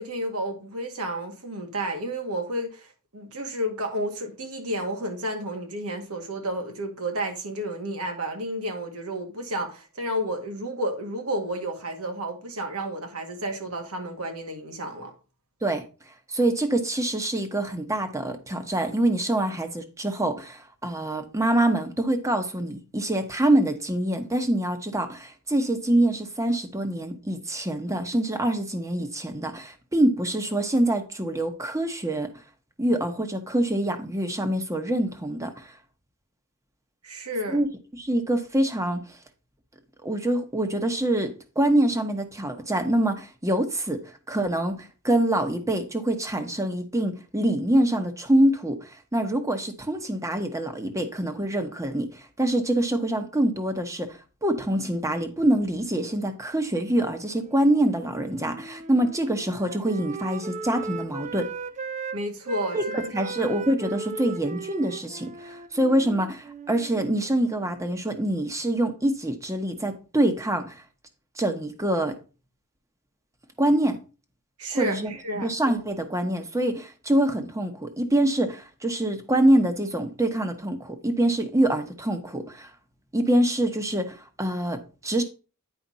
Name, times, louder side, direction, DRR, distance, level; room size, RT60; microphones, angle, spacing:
voice 1, 0.0-15.1 37.0-37.6 62.1-63.3 74.6-75.5, right 1 dB, 80° right, 1.9 m, -31 dB
voice 2, 16.3-32.3 32.8-35.7 37.5-37.7 38.0-39.2 40.0-44.0 44.3-61.5 62.7-70.8 71.4-72.2 73.6-74.0 74.7-75.1 75.4-82.7 83.1-85.2, right 1 dB, 15° right, 1.0 m, -25 dB
Wind instrument woodwind instrument, 57.3-62.2 62.5-67.8, right 4 dB, 30° right, 0.5 m, -37 dB
8.9 x 5.0 x 4.0 m
head